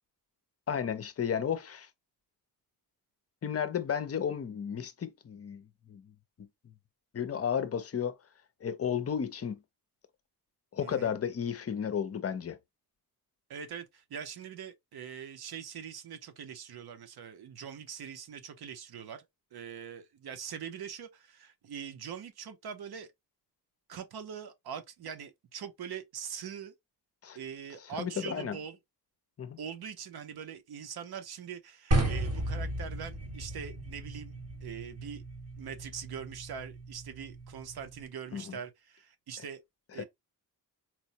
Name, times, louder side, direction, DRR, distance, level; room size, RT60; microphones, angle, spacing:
voice 1, 0.7-1.9 3.4-6.1 7.1-8.1 8.6-9.6 10.7-12.6 27.2-27.4 28.0-28.6 29.4-29.6 38.3-38.6 40.0-40.1, left 8 dB, 40° left, 0.6 m, -33 dB
voice 2, 10.8-11.1 13.5-19.3 19.5-23.1 23.9-26.7 27.3-28.8 29.6-34.3 34.6-35.2 35.6-39.6 39.9-40.0, right 7 dB, 70° right, 0.8 m, -42 dB
sound 1, 31.9-38.0, right 1 dB, 40° right, 1.3 m, -35 dB
4.4 x 2.1 x 2.8 m
wide cardioid pair, 130°, 39 cm